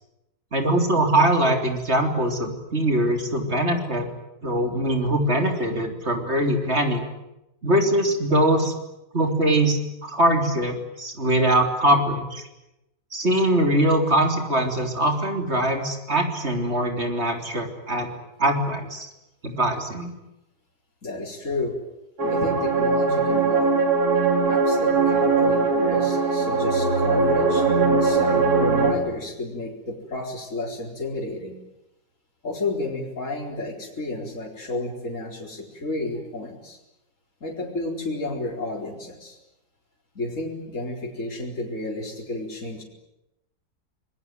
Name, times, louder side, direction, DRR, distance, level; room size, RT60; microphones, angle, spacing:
voice 1, 0.5-4.1 4.4-7.0 7.6-8.7 9.1-12.4 13.1-18.1 18.4-19.1 19.4-20.1, right 1 dB, 40° right, 4 dB, 3.8 m, -22 dB
voice 2, 21.0-21.8 22.2-23.8 24.5-31.6 32.4-36.8 37.4-39.4 40.1-42.8, left 2 dB, 45° left, -1 dB, 4.9 m, -31 dB
sound 1, 22.2-28.9, right 4 dB, 60° right, 4.6 m, -20 dB
26.0 x 22.0 x 9.5 m, 0.90 s
omnidirectional pair, 1.8 m